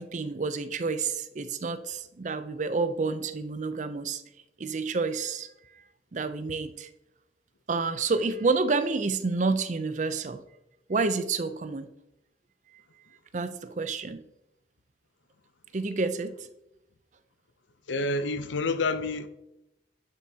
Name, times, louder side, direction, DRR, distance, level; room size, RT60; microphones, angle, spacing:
voice 1, 0.0-4.2 4.6-5.8 6.1-6.9 7.7-10.4 10.9-11.9 13.3-14.2 15.7-16.5, right 4 dB, 40° right, 0.5 m, -29 dB
voice 2, 17.9-19.3, left 3 dB, 90° left, 0.6 m, -28 dB
10.5 x 7.4 x 2.8 m
head